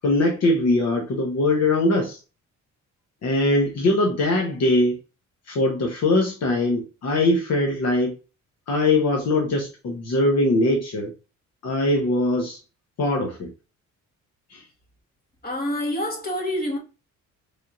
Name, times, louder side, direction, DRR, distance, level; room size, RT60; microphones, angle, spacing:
voice 1, 0.0-2.2 3.2-5.0 5.5-8.1 8.7-11.1 11.6-12.6 13.0-13.5 14.5-14.6, left 2 dB, 55° left, 0.9 m, -21 dB
voice 2, 15.4-16.8, left 1 dB, 30° left, 1.6 m, -27 dB
4.0 x 3.4 x 2.5 m
cardioid pair, 90°, 30 cm